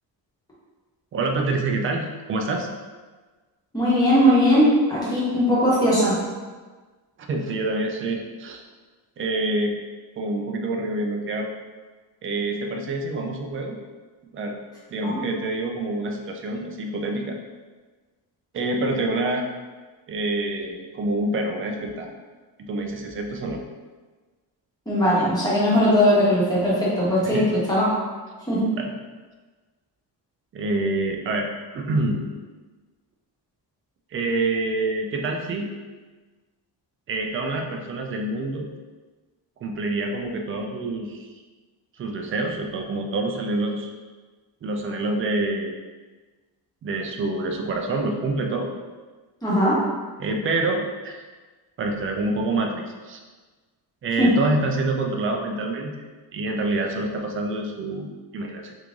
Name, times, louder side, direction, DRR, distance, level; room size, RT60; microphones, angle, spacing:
voice 1, 1.1-2.7 7.3-8.6 9.2-9.8 10.2-11.5 12.2-13.8 14.3-14.6 14.9-17.4 18.5-19.5 20.1-22.1 22.6-23.6 27.2-27.5 28.8-28.9 30.5-31.5 31.7-32.3 34.1-35.7 37.1-38.7 39.6-41.3 42.0-43.9 44.6-45.8 46.8-48.7 50.2-51.2 51.8-53.2 54.0-56.0 56.3-58.7, right 2 dB, 35° right, 3 dB, 0.4 m, -26 dB
voice 2, 3.7-6.1 15.0-15.2 24.9-27.9 28.5-28.6 49.4-49.7 54.2-54.3, equal, 10° left, -8 dB, 1.2 m, -19 dB
3.6 x 3.1 x 3.7 m, 1.3 s
cardioid pair, 175°, 41 cm